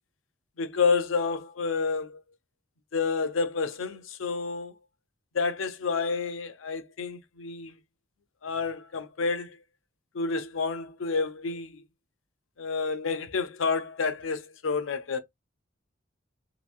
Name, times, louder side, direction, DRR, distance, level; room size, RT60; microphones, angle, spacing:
voice 1, 0.6-2.2 2.9-4.7 5.3-7.7 8.4-9.6 10.1-11.8 12.6-15.2, left 4 dB, 90° left, 0.6 m, -29 dB
2.9 x 2.6 x 2.3 m
head